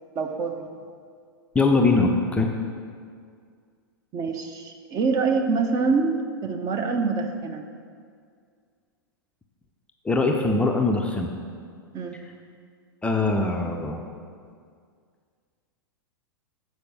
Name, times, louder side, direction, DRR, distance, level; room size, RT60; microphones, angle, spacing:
voice 1, 0.2-0.7 4.1-7.6 11.9-12.2, right 4 dB, 30° right, 5 dB, 0.8 m, -25 dB
voice 2, 1.5-2.5 10.0-11.3 13.0-14.0, left 3 dB, 10° left, 2 dB, 0.5 m, -22 dB
8.4 x 4.7 x 6.2 m, 2.1 s
figure-of-eight pair, 100°, 12 cm